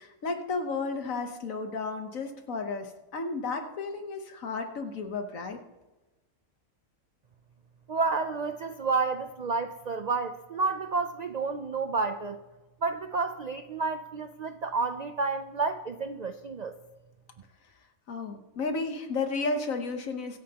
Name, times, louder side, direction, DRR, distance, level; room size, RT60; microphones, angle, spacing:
voice 1, 0.0-5.6 18.1-20.4, left 3 dB, 70° left, 6 dB, 1.5 m, -33 dB
voice 2, 7.9-12.4 12.8-16.7, right 4 dB, 85° right, 8 dB, 0.3 m, -30 dB
24.5 x 8.6 x 2.9 m, 1.1 s
omnidirectional pair, 1.5 m